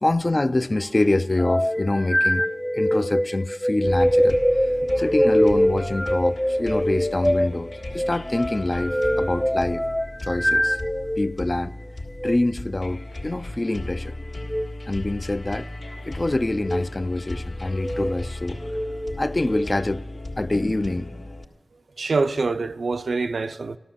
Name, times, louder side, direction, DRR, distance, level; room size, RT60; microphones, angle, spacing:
voice 1, 0.0-2.5 2.7-4.4 4.9-9.8 10.2-10.8 11.2-11.7 12.2-14.2 14.9-15.7 16.0-18.6 19.2-20.0 20.4-21.3, left 2 dB, 30° left, 0.4 m, -25 dB
sound 1, 1.4-11.3 12.1-12.4 14.4-14.7 15.5-16.0 16.5-16.9 17.6-18.1 18.6-19.7, equal, 5° left, 0.7 m, -24 dB
sound 2, 3.8-21.5, left 1 dB, 70° left, 1.7 m, -36 dB
voice 2, 22.0-23.8, right 3 dB, 70° right, 0.5 m, -25 dB
14.0 x 12.0 x 7.4 m
wide cardioid pair, 85°, 0 cm